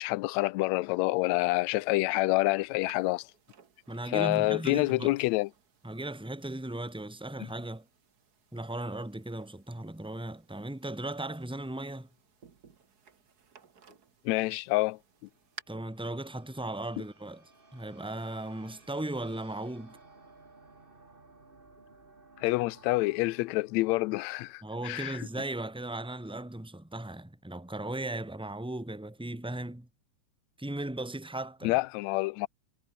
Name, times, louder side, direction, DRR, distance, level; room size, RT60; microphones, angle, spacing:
voice 1, 0.0-3.3 4.1-5.5 14.2-15.0 22.4-25.2 31.6-32.5, left 21 dB, 80° left, 1.7 m, -27 dB
sound 1, 2.9-15.6, right 6 dB, 35° right, 1.8 m, -57 dB
voice 2, 3.9-5.2 5.8-7.9 8.5-12.1 15.7-17.4 17.7-20.0 24.6-29.9 30.6-31.8, right 1 dB, 5° right, 0.7 m, -37 dB
sound 2, 14.9-25.2, right 3 dB, 20° right, 2.2 m, -58 dB
omnidirectional pair, 3.6 m